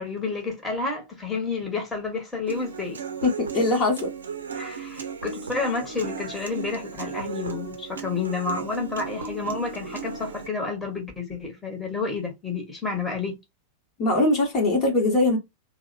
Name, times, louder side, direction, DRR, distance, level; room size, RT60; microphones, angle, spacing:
voice 1, 0.0-3.0 4.5-13.4, left 4 dB, 10° left, 1.2 m, -30 dB
Human voice / Acoustic guitar, 2.5-10.5, right 6 dB, 70° right, 0.5 m, -36 dB
voice 2, 3.2-4.1 14.0-15.4, left 2 dB, 35° left, 1.1 m, -21 dB
3.2 x 2.1 x 2.6 m
figure-of-eight pair, 90°, 0 cm